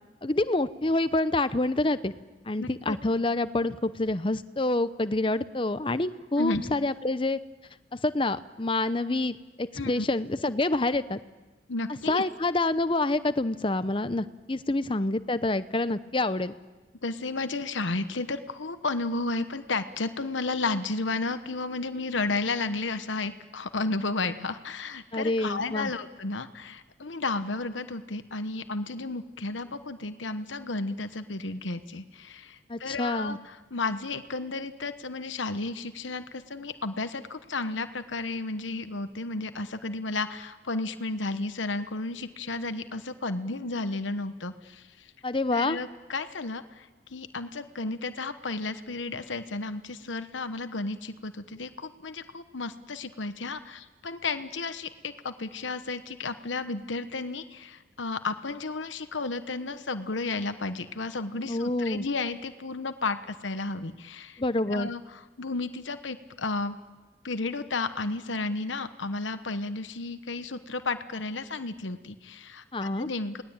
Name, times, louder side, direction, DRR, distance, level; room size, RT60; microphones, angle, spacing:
voice 1, 0.2-2.1 2.5-7.4 7.9-11.2 12.1-16.5 25.1-25.9 32.7-33.4 45.2-45.8 61.5-62.0 64.4-64.9 72.7-73.1, left 2 dB, 25° left, 13 dB, 0.7 m, -27 dB
voice 2, 2.6-3.0 6.4-6.6 9.8-10.1 11.7-12.2 17.0-45.1 45.5-64.4 64.7-66.8 67.2-73.4, left 3 dB, 80° left, 10 dB, 1.1 m, -33 dB
29.0 x 19.5 x 8.9 m, 1.2 s
head